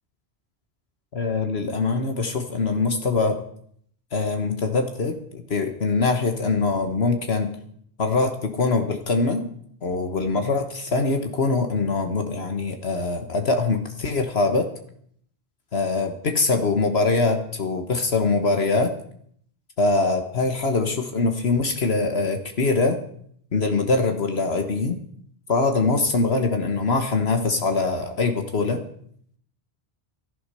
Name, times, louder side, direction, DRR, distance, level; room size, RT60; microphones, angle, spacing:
voice 1, 1.1-3.4 4.1-7.5 8.0-9.5 9.8-14.7 15.7-18.9 19.8-23.0 23.5-25.0 25.5-28.8, left 3 dB, 70° left, 6 dB, 1.7 m, -23 dB
13.5 x 11.5 x 6.9 m, 0.64 s
omnidirectional pair, 1.1 m